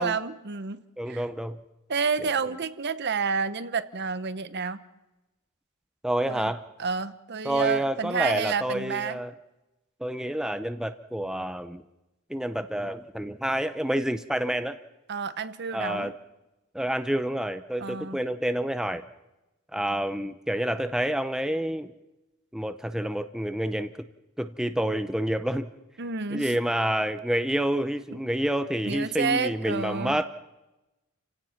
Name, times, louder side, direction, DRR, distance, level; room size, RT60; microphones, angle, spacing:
voice 1, 0.0-1.3 1.9-4.8 6.3-6.5 6.8-9.2 15.1-16.1 17.8-18.2 26.0-26.6 28.1-28.4 28.8-30.2, right 5 dB, 50° right, 13 dB, 0.9 m, -30 dB
voice 2, 1.0-1.6 6.0-6.6 7.4-9.3 10.0-11.8 12.3-14.8 15.7-16.1 16.7-19.0 19.7-21.9 22.5-23.9 24.4-25.7 26.3-30.3, right 1 dB, 5° right, 9 dB, 0.6 m, -28 dB
29.5 x 17.0 x 5.8 m, 1.0 s
head